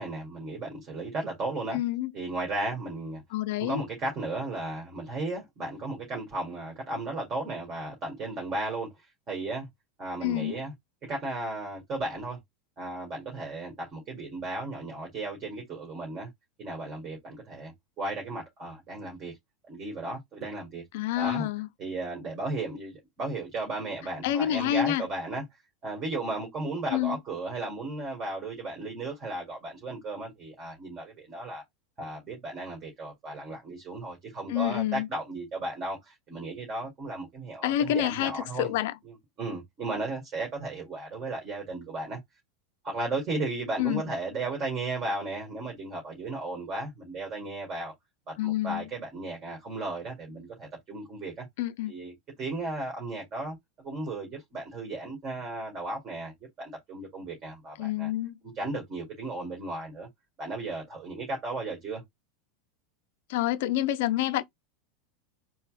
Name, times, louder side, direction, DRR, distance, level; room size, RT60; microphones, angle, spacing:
voice 1, 0.0-1.8 2.1-3.2 3.6-8.9 9.3-9.7 10.0-10.7 11.0-12.4 12.8-16.3 16.6-19.4 19.7-20.8 21.2-21.5 21.8-25.4 25.8-31.6 32.0-38.7 39.0-42.2 42.8-47.9 48.3-51.4 51.9-58.1 58.5-60.1 60.4-62.0, right 2 dB, 35° right, 1.8 m, -35 dB
voice 2, 1.7-2.1 3.3-3.9 10.2-10.6 20.9-21.7 24.2-25.0 26.9-27.2 34.5-35.1 37.6-39.0 43.8-44.0 48.4-48.9 51.6-51.9 57.8-58.4 63.3-64.4, left 12 dB, 60° left, 0.4 m, -28 dB
4.3 x 2.2 x 2.4 m
figure-of-eight pair, 85°, 0 cm